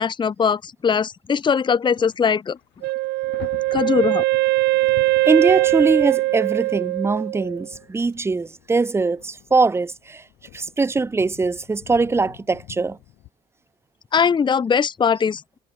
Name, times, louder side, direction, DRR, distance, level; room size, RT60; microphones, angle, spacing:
voice 1, 0.0-2.6 3.7-4.2 14.1-15.4, left 6 dB, 30° left, 0.9 m, -20 dB
Thunder, 1.8-2.2 2.5-13.3, left 17 dB, 80° left, 7.2 m, -45 dB
Wind instrument woodwind instrument, 2.8-7.7, right 19 dB, 80° right, 0.6 m, -21 dB
voice 2, 5.2-10.2 10.5-13.0, right 3 dB, 15° right, 0.7 m, -21 dB
cardioid pair, 110°, 17 cm